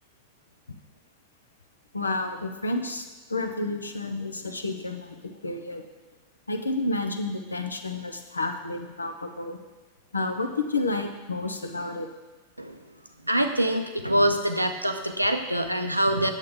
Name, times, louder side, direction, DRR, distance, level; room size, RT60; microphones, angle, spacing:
voice 1, 1.9-5.8 6.5-9.6 10.1-12.1, left 2 dB, 80° left, 6 dB, 0.7 m, -30 dB
voice 2, 13.3-16.3, right 1 dB, 85° right, 6 dB, 0.6 m, -24 dB
8.9 x 7.2 x 3.7 m, 1.2 s
figure-of-eight pair, 90°, 0 cm